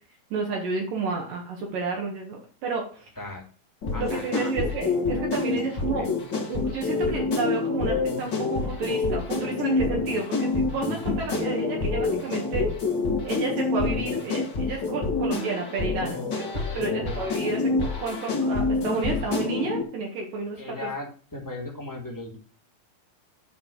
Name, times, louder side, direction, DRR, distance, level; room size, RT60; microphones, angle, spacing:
voice 1, 0.3-3.1 4.0-6.1 6.5-12.7 13.2-20.9, right 4 dB, 65° right, 0 dB, 3.1 m, -31 dB
sound 1, 3.8-19.8, left 3 dB, 40° left, 1.8 m, -27 dB
voice 2, 3.9-4.5 5.5-5.6 6.0-6.1 16.7-17.0 20.6-22.4, left 2 dB, 5° left, -2 dB, 2.0 m, -37 dB
9.8 x 4.5 x 7.2 m, 0.40 s
omnidirectional pair, 4.3 m